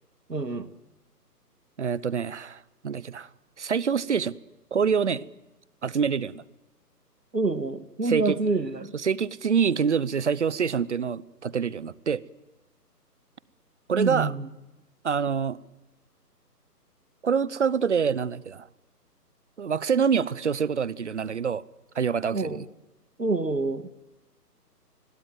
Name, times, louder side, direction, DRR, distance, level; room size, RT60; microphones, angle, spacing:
voice 1, 0.3-0.7 7.3-8.9 14.0-14.5 22.3-22.6 23.2-23.9, right 3 dB, 85° right, 11 dB, 1.8 m, -27 dB
voice 2, 1.8-3.3 3.6-4.4 4.7-5.3 5.8-6.4 8.0-8.4 8.9-12.2 13.9-14.3 15.0-15.6 17.2-18.7 19.6-21.6 21.9-22.7, right 6 dB, 45° right, 22 dB, 0.9 m, -26 dB
28.0 x 21.5 x 7.8 m, 1.0 s
figure-of-eight pair, 145°, 48 cm